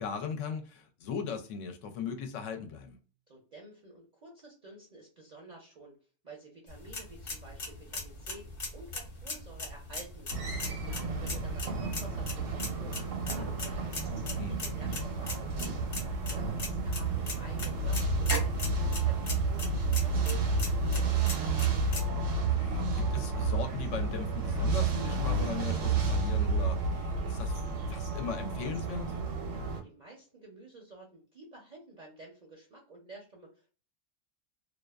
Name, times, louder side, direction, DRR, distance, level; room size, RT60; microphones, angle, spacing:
voice 1, 0.0-3.0 14.4-14.5 20.2-20.3 22.5-27.6 27.9-29.2, left 6 dB, 80° left, 0.9 m, -38 dB
voice 2, 3.3-6.0 6.2-10.3 10.8-13.0 13.3-15.6 16.3-19.7 20.0-21.7 29.5-33.7, right 2 dB, 50° right, 0.6 m, -51 dB
sound 1, 6.7-22.0, left 2 dB, 50° left, 0.9 m, -40 dB
sound 2, 10.3-29.8, right 3 dB, 80° right, 1.0 m, -31 dB
2.4 x 2.3 x 2.2 m
omnidirectional pair, 1.3 m